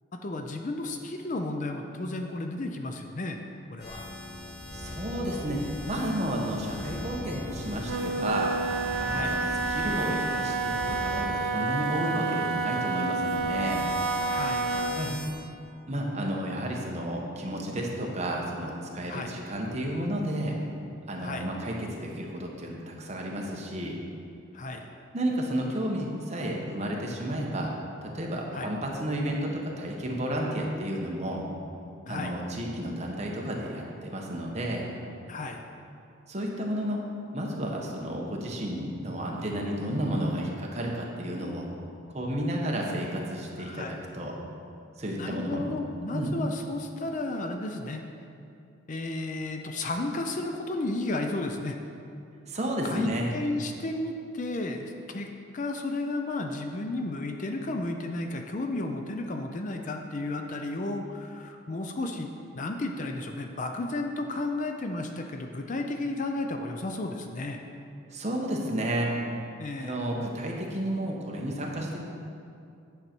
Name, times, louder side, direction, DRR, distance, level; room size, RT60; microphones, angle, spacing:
voice 1, 0.1-3.4 3.7-4.1 9.1-9.4 14.3-14.7 19.1-19.4 21.2-21.5 24.5-24.8 28.5-28.7 32.1-32.4 35.3-35.6 43.6-44.0 45.2-48.0 48.9-51.8 52.8-67.6 69.6-70.0, left 2 dB, 35° left, 4 dB, 0.5 m, -33 dB
sound 1, 3.8-11.3 13.2-15.3, left 1 dB, 55° left, 1.7 m, -39 dB
voice 2, 4.7-8.6 9.0-9.4 9.7-13.9 14.9-15.1 15.9-20.6 21.1-24.0 25.1-27.7 28.0-31.4 32.1-34.9 36.3-37.0 37.3-41.7 42.1-44.3 45.0-45.7 46.1-46.3 52.5-53.3 68.1-69.1 69.8-72.0, right 1 dB, 30° right, -1 dB, 1.0 m, -32 dB
Wind instrument woodwind instrument, 7.8-15.0, right 3 dB, 70° right, 0.5 m, -29 dB
9.7 x 6.4 x 4.4 m, 2.6 s
head